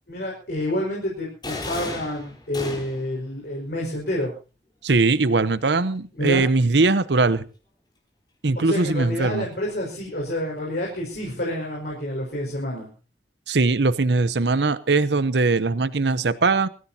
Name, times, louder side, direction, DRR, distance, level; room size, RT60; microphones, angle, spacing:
voice 1, 0.1-4.3 6.2-6.4 8.6-12.9, left 1 dB, 60° left, -2 dB, 5.1 m, -28 dB
sound 1, 1.4-3.2, left 2 dB, 25° left, 4.3 m, -34 dB
voice 2, 4.8-7.5 8.4-9.5 13.5-16.7, right 3 dB, 75° right, 15 dB, 0.8 m, -20 dB
24.0 x 15.0 x 2.8 m, 0.34 s
head